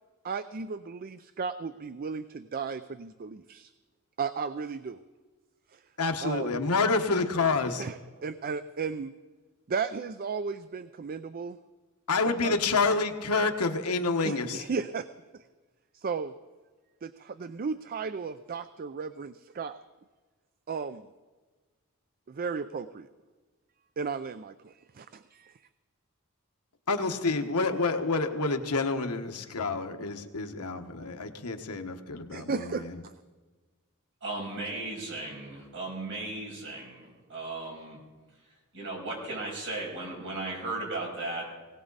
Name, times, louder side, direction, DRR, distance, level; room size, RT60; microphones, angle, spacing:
voice 1, 0.2-3.7 4.2-5.0 5.7-5.8 6.2-6.6 7.8-7.9 8.2-9.1 9.7-11.6 12.2-12.6 14.2-15.1 15.3-15.4 15.9-16.3 17.0-19.8 20.7-21.1 22.3-23.1 24.0-25.6 32.3-33.1, right 5 dB, 40° right, 12 dB, 0.4 m, -35 dB
voice 2, 6.0-7.8 12.1-14.6 26.9-33.0, left 3 dB, 85° left, 5 dB, 1.3 m, -28 dB
voice 3, 34.2-38.0 38.7-41.5, right 2 dB, 60° right, -3 dB, 6.5 m, -36 dB
19.5 x 18.0 x 4.0 m, 1.3 s
head